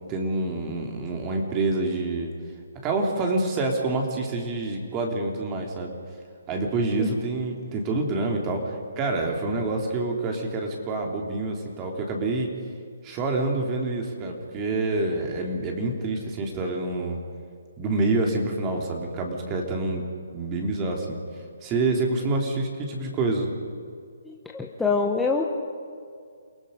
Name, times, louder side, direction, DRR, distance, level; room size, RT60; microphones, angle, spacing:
voice 1, 0.1-2.3 2.8-6.0 6.5-12.5 13.0-17.2 17.8-20.0 20.3-21.2 21.6-23.5, right 2 dB, 20° right, 1 dB, 3.0 m, -27 dB
voice 2, 24.2-25.4, left 4 dB, 5° left, -1 dB, 1.2 m, -25 dB
28.5 x 18.5 x 5.2 m, 2.2 s
hypercardioid pair, 150°, 0 cm